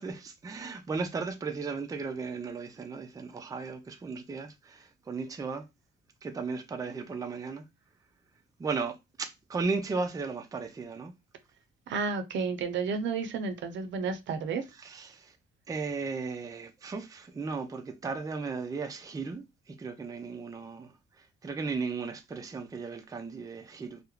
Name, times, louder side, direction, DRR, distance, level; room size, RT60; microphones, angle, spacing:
voice 1, 0.0-5.7 6.2-7.7 8.6-11.1 14.8-15.3 15.7-20.9 21.4-24.0, right 4 dB, 15° right, 0.4 m, -35 dB
voice 2, 11.9-14.6, right 5 dB, 70° right, 0.5 m, -31 dB
2.3 x 2.0 x 3.0 m
cardioid pair, 90°, 20 cm